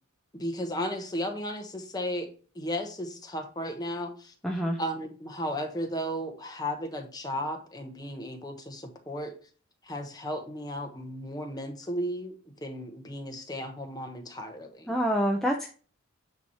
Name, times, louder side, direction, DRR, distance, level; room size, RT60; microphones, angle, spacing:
voice 1, 0.3-2.3 2.5-4.3 4.8-9.3 9.8-12.3 12.6-14.9, equal, 20° left, 4 dB, 1.1 m, -34 dB
voice 2, 4.4-4.8 14.9-15.7, equal, ahead, 0 dB, 0.6 m, -26 dB
9.2 x 3.1 x 5.6 m, 0.40 s
head